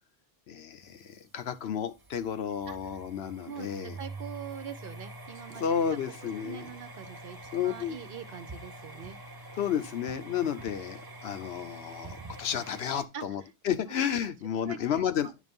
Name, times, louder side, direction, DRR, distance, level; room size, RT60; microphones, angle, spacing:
voice 1, 0.5-4.0 5.6-6.7 7.5-8.0 9.6-15.3, left 8 dB, 70° left, 1.0 m, -32 dB
sound 1, 0.8-13.0, right 2 dB, 25° right, 0.8 m, -46 dB
voice 2, 3.4-5.6 6.2-9.2 13.1-13.2 14.7-14.8 15.2-15.3, right 7 dB, 60° right, 0.9 m, -43 dB
9.3 x 3.4 x 5.3 m
omnidirectional pair, 1.1 m